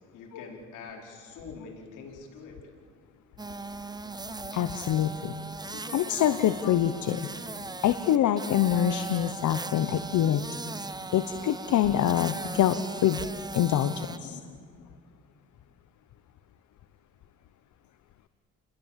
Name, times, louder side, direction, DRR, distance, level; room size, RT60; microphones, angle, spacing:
voice 1, 0.1-2.7, left 4 dB, 90° left, 0 dB, 4.8 m, -45 dB
sound 1, 3.4-14.2, right 3 dB, 15° right, 0.9 m, -39 dB
voice 2, 4.5-5.3 5.7-7.3 7.8-10.4 10.8-13.2 13.5-14.4, left 10 dB, 75° left, 11 dB, 1.0 m, -25 dB
30.0 x 20.5 x 7.5 m, 2.2 s
cardioid pair, 90°, 30 cm